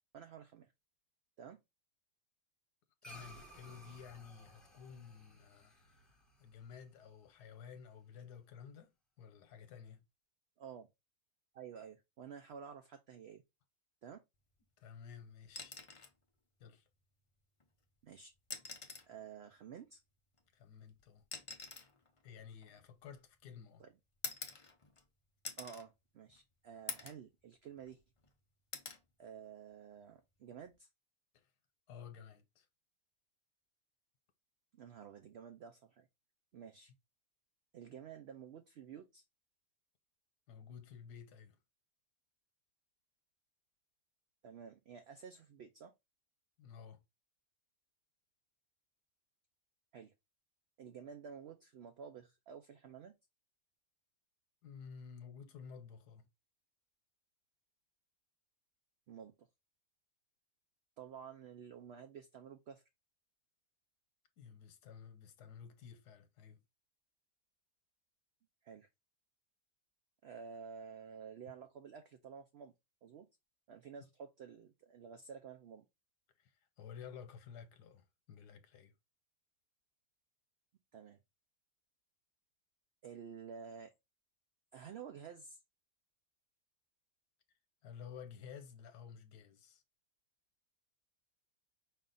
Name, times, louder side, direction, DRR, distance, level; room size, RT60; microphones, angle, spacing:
voice 1, 0.1-0.7 1.4-1.6 10.6-10.9 11.5-13.4 14.0-14.2 18.0-18.3 19.1-20.0 23.8-23.9 25.6-28.0 29.2-30.9 34.7-36.1 36.5-36.9 37.7-39.2 44.4-45.9 49.9-50.1 50.8-53.1 59.1-59.5 61.0-62.8 68.6-68.9 70.2-72.7 73.0-73.3 73.7-75.9 80.9-81.2 83.0-83.9 84.7-85.6, right 7 dB, 70° right, 0.6 m, -51 dB
voice 2, 3.0-5.7 6.1-8.9 9.2-10.0 14.8-15.8 16.6-16.9 20.5-21.2 22.2-23.8 31.3-31.5 31.9-32.7 40.5-41.6 46.6-47.0 54.6-56.3 64.4-66.6 76.4-78.9 87.8-89.8, left 7 dB, 85° left, 1.4 m, -53 dB
sound 1, 3.0-7.6, equal, ahead, 0.9 m, -58 dB
sound 2, 15.5-16.2 17.6-17.7 18.4-19.2 20.3-23.4 24.2-25.1 25.4-25.9 26.3-26.4 26.9-27.3 27.7-28.3 28.7-29.0 30.5-30.7, left 4 dB, 55° left, 0.3 m, -47 dB
5.5 x 2.4 x 3.8 m
omnidirectional pair, 1.7 m